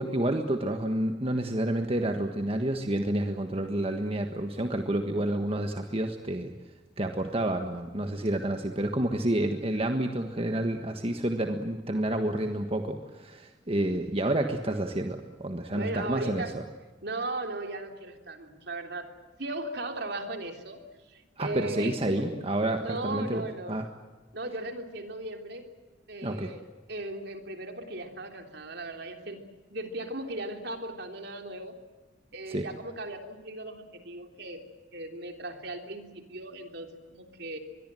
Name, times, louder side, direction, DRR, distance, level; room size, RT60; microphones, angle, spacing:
voice 1, 0.0-6.5 7.0-16.6 21.4-23.9 26.2-26.5 32.5-32.6, right 1 dB, 30° right, 5 dB, 1.5 m, -29 dB
voice 2, 15.7-16.5 17.0-19.1 19.4-20.8 21.1-22.4 22.8-23.8 24.3-25.6 26.1-26.6 26.9-29.4 29.7-31.7 32.3-34.6 34.9-37.6, right 2 dB, 60° right, 5 dB, 3.4 m, -37 dB
25.0 x 22.0 x 7.7 m, 1.3 s
head